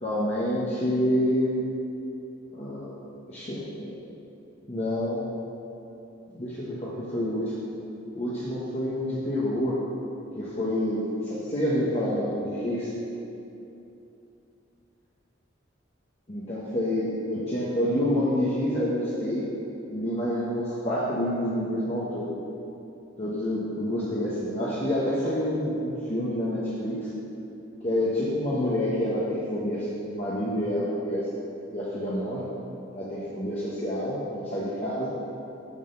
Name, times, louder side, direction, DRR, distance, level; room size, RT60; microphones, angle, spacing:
voice 1, 0.0-1.5 2.5-2.9 3.3-4.0 4.7-5.2 6.3-7.7 8.1-9.8 10.3-12.9 16.3-19.5 19.9-22.3 23.2-27.1 27.8-31.3 31.7-32.5 32.9-35.1, equal, 35° left, -8 dB, 1.1 m, -28 dB
7.2 x 6.4 x 6.7 m, 2.9 s
head